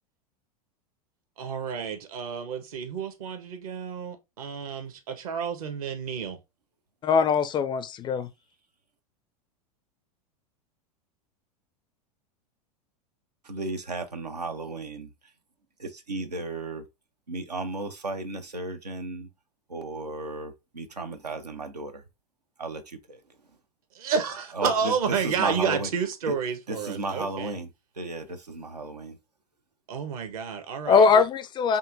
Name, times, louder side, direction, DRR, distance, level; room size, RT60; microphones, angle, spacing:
voice 1, 1.4-6.4 23.9-27.5 29.9-31.2, right 6 dB, 65° right, 1.1 m, -30 dB
voice 2, 7.0-8.3 30.9-31.8, left 5 dB, 25° left, 0.4 m, -21 dB
voice 3, 13.4-15.1 15.8-16.8 17.3-19.3 19.7-22.0 22.6-23.2 24.5-25.9 26.3-26.4 26.7-29.2, right 2 dB, 90° right, 0.7 m, -34 dB
5.4 x 2.7 x 2.5 m
figure-of-eight pair, 90°, 20 cm